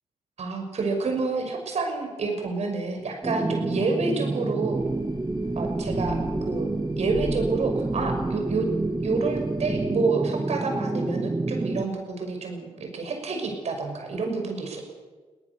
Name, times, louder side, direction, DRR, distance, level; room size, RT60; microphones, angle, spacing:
voice 1, 0.4-4.8 5.6-6.2 6.5-6.7 7.0-8.7 9.0-14.8, right 4 dB, 65° right, 3 dB, 5.9 m, -28 dB
sound 1, 3.2-11.8, right 2 dB, 20° right, 0.9 m, -28 dB
sound 2, 4.7-9.8, left 3 dB, 40° left, 5.7 m, -41 dB
22.5 x 18.0 x 7.0 m, 1.4 s
cardioid pair, 85°, 12 cm